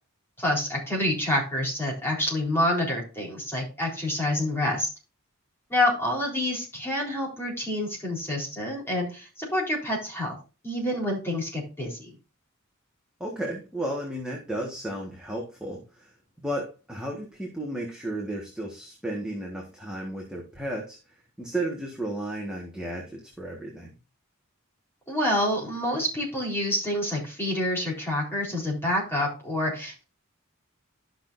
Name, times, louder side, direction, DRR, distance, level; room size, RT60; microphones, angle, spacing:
voice 1, 0.4-4.9 5.7-10.4 10.6-12.1 25.1-30.0, left 1 dB, 10° left, -2 dB, 4.0 m, -27 dB
voice 2, 13.2-16.1 16.4-21.0 21.4-23.9, right 1 dB, 5° right, -2 dB, 1.6 m, -33 dB
13.0 x 6.0 x 2.6 m, 0.32 s
head